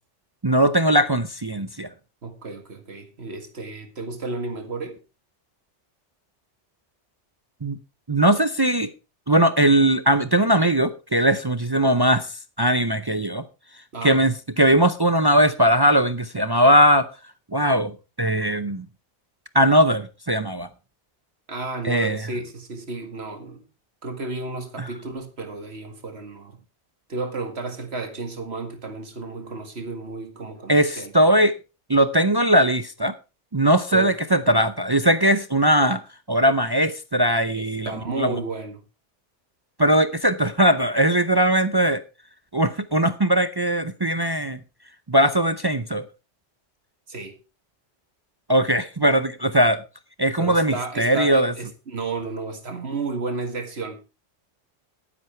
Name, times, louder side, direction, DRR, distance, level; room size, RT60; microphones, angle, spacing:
voice 1, 0.4-1.9 7.6-7.8 8.1-8.9 9.3-13.4 14.0-17.1 17.5-18.9 19.5-20.7 21.8-22.3 30.7-31.6 31.9-33.1 33.5-36.0 36.3-37.9 38.2-38.3 39.8-42.0 42.5-44.6 45.1-46.0 48.5-49.8 50.2-51.5, right 1 dB, 30° right, 0.5 m, -19 dB
voice 2, 2.2-5.0 13.9-14.2 21.5-23.6 24.0-26.6 27.1-31.3 33.9-34.1 37.5-38.8 47.1-47.4 50.4-54.0, right 3 dB, 60° right, 2.2 m, -32 dB
11.0 x 10.5 x 4.5 m
omnidirectional pair, 1.2 m